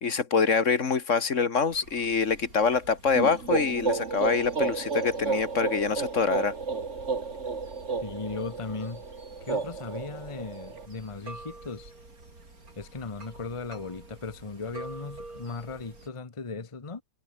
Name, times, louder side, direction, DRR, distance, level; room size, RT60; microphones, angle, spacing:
voice 1, 0.0-6.5, left 5 dB, 60° left, 1.9 m, -25 dB
sound 1, 1.7-16.1, right 2 dB, 85° right, 5.4 m, -48 dB
sound 2, 3.1-10.9, right 4 dB, 55° right, 2.4 m, -32 dB
voice 2, 8.0-9.0 9.4-11.9 12.7-17.0, left 4 dB, 25° left, 1.2 m, -37 dB
omnidirectional pair, 1.5 m